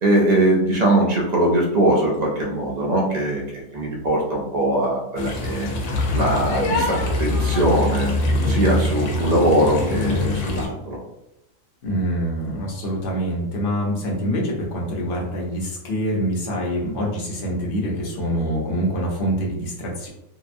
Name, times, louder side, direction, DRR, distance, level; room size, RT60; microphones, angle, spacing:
voice 1, 0.0-5.7 6.1-8.1 8.5-11.0, right 1 dB, 60° right, -2 dB, 0.4 m, -21 dB
sound 1, 5.2-10.7, left 2 dB, 85° left, 1.0 m, -23 dB
voice 2, 11.8-20.1, equal, 50° left, -3 dB, 0.8 m, -25 dB
2.8 x 2.2 x 2.5 m, 0.89 s
omnidirectional pair, 1.4 m